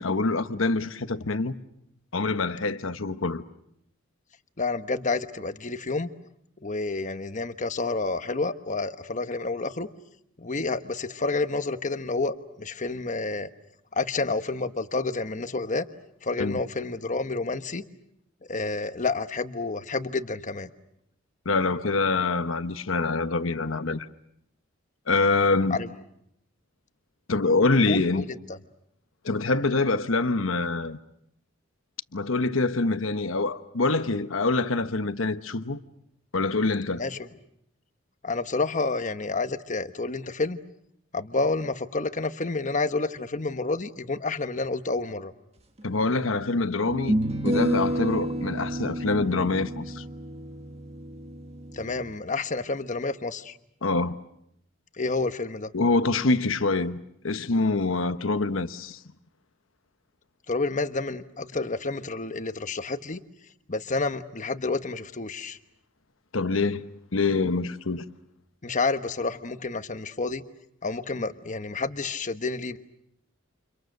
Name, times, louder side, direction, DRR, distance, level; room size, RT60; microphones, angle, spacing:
voice 1, 0.0-1.5 2.1-3.4 16.4-16.6 21.4-24.1 25.1-25.8 27.3-28.2 29.2-31.0 32.1-35.8 36.3-37.0 45.8-47.1 47.4-50.0 53.8-54.2 55.7-57.0 57.2-59.0 66.3-66.8 67.1-68.1, left 3 dB, 80° left, 1.1 m, -25 dB
voice 2, 4.6-6.1 6.6-9.9 10.4-13.5 13.9-15.9 16.2-17.8 18.4-20.7 25.7-25.9 27.9-28.6 37.0-37.3 38.2-40.6 41.1-45.3 51.7-53.6 55.0-55.7 60.5-63.2 63.7-65.6 68.6-70.4 70.8-72.8, left 3 dB, 40° left, 1.2 m, -29 dB
sound 1, 45.8-45.9 46.9-52.1, equal, 30° right, 1.7 m, -30 dB
29.5 x 28.5 x 6.6 m
head